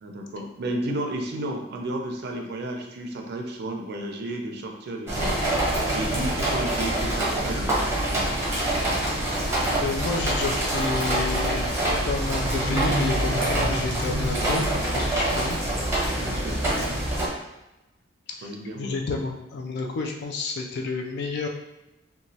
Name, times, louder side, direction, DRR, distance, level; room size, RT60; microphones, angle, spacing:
voice 1, 0.0-5.3 5.9-8.2 16.0-16.6 18.4-19.2, right 1 dB, 55° right, 2 dB, 0.4 m, -33 dB
sound 1, 5.1-17.3, right 1 dB, 15° right, 0.7 m, -25 dB
voice 2, 9.8-11.7 12.0-15.6 18.4-21.5, left 3 dB, 55° left, 2 dB, 0.3 m, -30 dB
3.0 x 2.2 x 2.7 m, 0.96 s
head